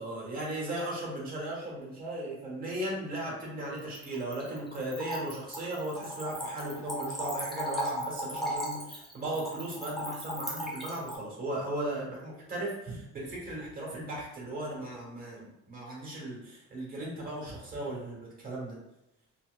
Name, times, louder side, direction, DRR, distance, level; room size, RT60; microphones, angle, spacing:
voice 1, 0.0-18.8, right 1 dB, 30° right, -4 dB, 1.2 m, -37 dB
Splash splatter / Trickle dribble, 3.8-11.2, equal, ahead, 0.6 m, -36 dB
4.0 x 2.4 x 2.3 m, 0.91 s
cardioid pair, 155°, 30 cm